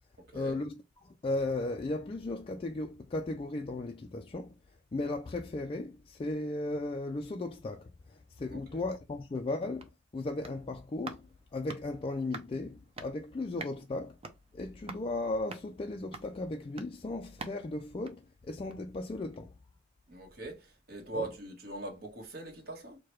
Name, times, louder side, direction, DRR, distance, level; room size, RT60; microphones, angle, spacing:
voice 1, 0.3-4.5 4.9-11.3 11.5-14.2 14.5-19.5 21.1-21.3, left 2 dB, 25° left, 0.3 m, -36 dB
voice 2, 8.5-8.8 20.1-23.0, right 2 dB, 50° right, 1.3 m, -41 dB
sound 1, 9.7-19.0 19.3-19.4, right 3 dB, 30° right, 0.6 m, -49 dB
4.6 x 2.2 x 3.0 m
head